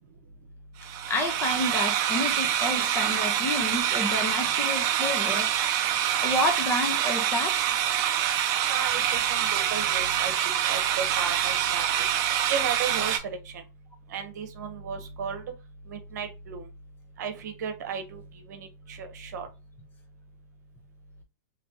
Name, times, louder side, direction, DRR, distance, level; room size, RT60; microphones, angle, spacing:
sound 1, 0.8-13.2, right 10 dB, 35° right, 0.5 m, -26 dB
voice 1, 1.1-5.5 6.2-7.6, left 1 dB, 20° left, 0.8 m, -29 dB
voice 2, 8.7-10.3 10.7-11.8 12.5-13.4 14.1-15.4 15.9-16.6 17.2-18.2 18.5-19.5, right 6 dB, 65° right, 0.9 m, -34 dB
3.2 x 2.9 x 2.8 m
hypercardioid pair, 135°, 10 cm